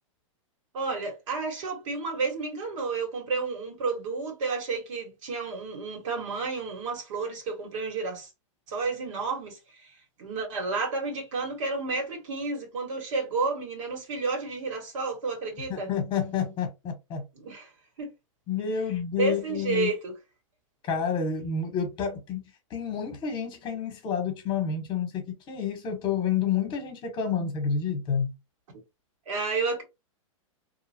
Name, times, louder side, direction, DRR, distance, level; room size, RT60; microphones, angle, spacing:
voice 1, 0.7-8.3 8.7-9.9 10.2-15.9 17.3-17.7 18.0-18.1 19.2-20.2 29.2-29.8, right 4 dB, 65° right, 1.7 m, -31 dB
voice 2, 15.7-17.2 18.5-19.9 20.8-28.3, left 7 dB, 25° left, 1.2 m, -29 dB
2.8 x 2.3 x 2.8 m
hypercardioid pair, 125°, 17 cm